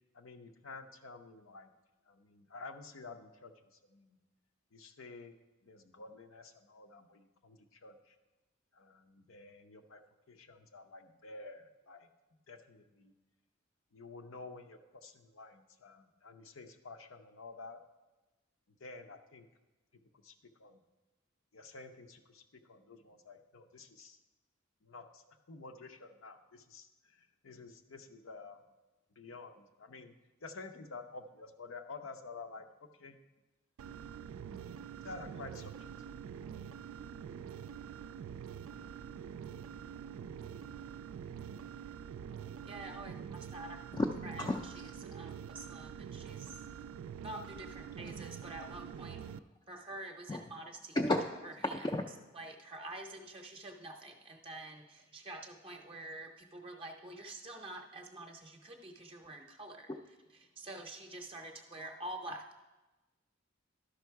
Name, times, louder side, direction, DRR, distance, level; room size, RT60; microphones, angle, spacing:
voice 1, 0.1-1.7 2.1-4.2 4.7-5.3 5.6-8.2 8.7-10.0 10.3-12.1 12.5-13.1 13.9-17.8 18.7-19.5 19.9-20.8 21.5-24.2 24.8-28.6 29.2-33.2 35.0-35.9 36.2-36.5, left 3 dB, 75° left, 7 dB, 0.7 m, -51 dB
sound 1, 33.8-49.4, right 8 dB, 85° right, 0.3 m, -46 dB
voice 2, 42.6-43.8 44.2-44.4 45.0-46.7 47.2-49.2 49.7-51.0 52.3-59.9 60.6-62.4, right 2 dB, 25° right, 3 dB, 0.6 m, -47 dB
voice 3, 44.4-44.8 48.0-48.2 49.2-49.3 50.3-50.5 50.9-51.3 51.6-52.1 59.9-60.0, left 1 dB, 20° left, 3 dB, 0.3 m, -33 dB
12.0 x 5.3 x 4.6 m, 1.1 s
head